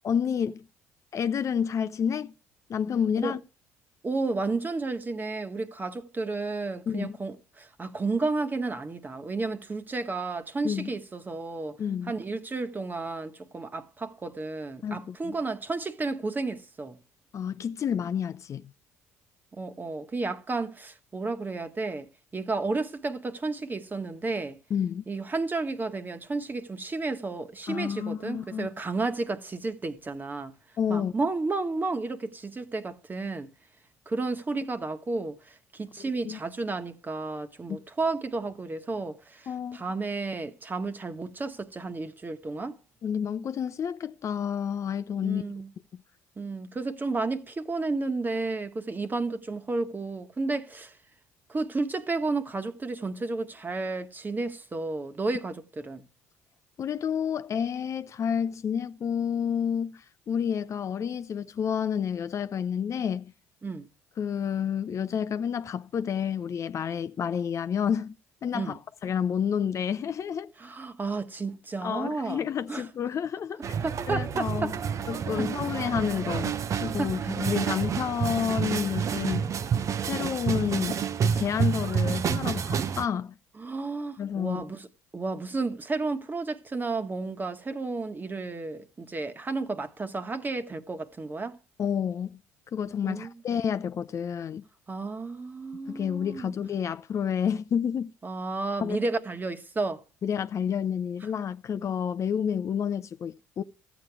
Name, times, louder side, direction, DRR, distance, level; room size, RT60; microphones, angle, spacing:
voice 1, 0.0-0.6 1.1-2.3 2.7-3.4 6.9-7.2 10.6-10.9 11.8-12.1 14.8-15.3 17.3-18.6 24.7-25.0 27.7-28.7 30.8-31.1 36.0-36.4 37.7-37.8 39.5-39.8 43.0-45.4 56.8-63.3 64.2-68.2 68.4-70.5 71.8-73.6 74.1-74.7 75.1-79.5 80.1-83.3 84.2-84.6 91.8-92.4 92.7-94.6 95.9-98.1 98.8-99.0 100.2-103.6, left 8 dB, 45° left, 0.6 m, -29 dB
voice 2, 4.0-11.8 12.0-17.0 19.5-24.6 25.1-30.6 30.9-33.5 34.1-42.8 45.2-45.7 46.4-51.0 51.5-56.0 63.6-63.9 68.5-68.8 70.6-72.9 73.8-74.7 75.3-75.5 77.0-77.3 77.7-77.8 83.6-84.9 85.1-91.6 93.0-93.4 94.9-96.5 98.2-100.0, right 3 dB, 25° right, 1.4 m, -32 dB
sound 1, 73.6-83.1, right 7 dB, 50° right, 0.8 m, -29 dB
14.0 x 8.3 x 4.8 m
hypercardioid pair, 60°, 7 cm